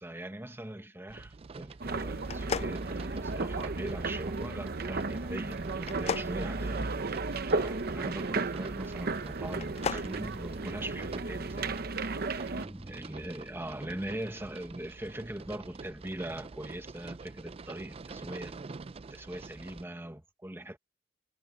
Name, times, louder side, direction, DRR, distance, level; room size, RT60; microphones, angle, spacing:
voice 1, 0.0-6.9 7.5-11.8 12.5-18.6 19.1-20.8, right 1 dB, 15° right, 1.1 m, -41 dB
sound 1, 1.1-19.8, right 4 dB, 30° right, 0.4 m, -47 dB
sound 2, 1.8-12.6, right 3 dB, 55° right, 0.9 m, -34 dB
sound 3, 2.2-3.6 5.8-7.4 9.5-10.1, left 6 dB, 35° left, 0.4 m, -36 dB
head